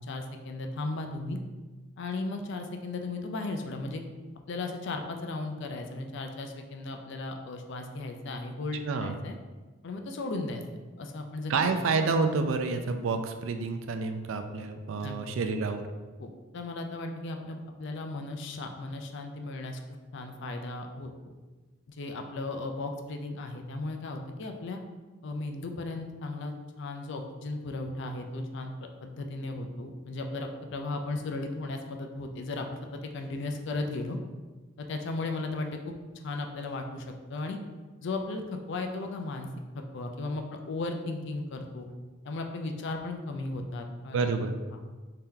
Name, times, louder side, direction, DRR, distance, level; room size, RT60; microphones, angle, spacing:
voice 1, 0.0-1.4 2.0-4.0 4.5-9.4 9.8-10.6 11.0-11.5 15.0-15.1 16.2-19.8 20.1-21.3 21.9-24.8 25.2-28.7 29.0-32.7 32.9-34.2 34.8-37.6 38.0-39.5 39.7-41.9 42.2-44.4, left 2 dB, 55° left, 4 dB, 0.4 m, -36 dB
voice 2, 11.5-15.8 44.1-44.5, right 4 dB, 65° right, 7 dB, 0.3 m, -28 dB
3.4 x 2.8 x 3.7 m, 1.3 s
head